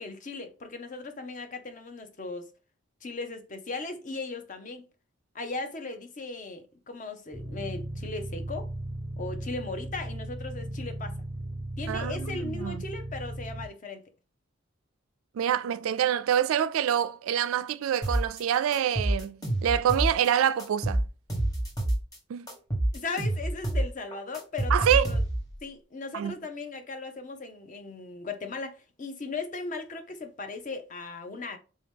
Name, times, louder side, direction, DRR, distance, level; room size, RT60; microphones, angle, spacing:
voice 1, 0.0-2.5 3.0-4.8 5.3-8.7 9.2-11.1 11.8-14.0 22.9-25.2 25.6-31.6, left 3 dB, 35° left, 0.5 m, -37 dB
sound 1, 7.3-13.7, right 1 dB, 10° right, 0.5 m, -36 dB
voice 2, 11.9-12.8 15.3-21.0 22.3-22.5 24.7-25.1 26.1-26.4, right 9 dB, 80° right, 0.3 m, -26 dB
sound 2, 18.0-18.4 18.7-20.3 20.6-22.2 22.5-25.6, right 1 dB, 15° left, 1.1 m, -28 dB
3.5 x 2.8 x 3.5 m
head